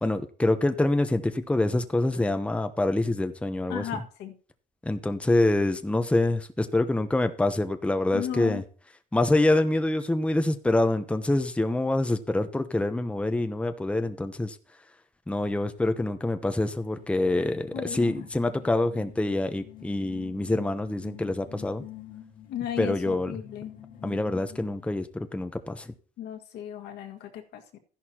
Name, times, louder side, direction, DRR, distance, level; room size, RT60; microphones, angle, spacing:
voice 1, 0.0-3.8 4.8-8.6 9.1-14.6 15.3-21.8 22.8-23.4 24.0-25.1 25.3-25.9, left 2 dB, 5° left, 0.8 m, -26 dB
voice 2, 3.7-4.3 8.1-8.6 17.7-18.2 22.5-23.7 26.2-27.8, left 10 dB, 80° left, 1.9 m, -35 dB
sound 1, 16.5-25.0, left 10 dB, 55° left, 1.9 m, -47 dB
13.5 x 11.0 x 2.9 m
cardioid pair, 110°, 17 cm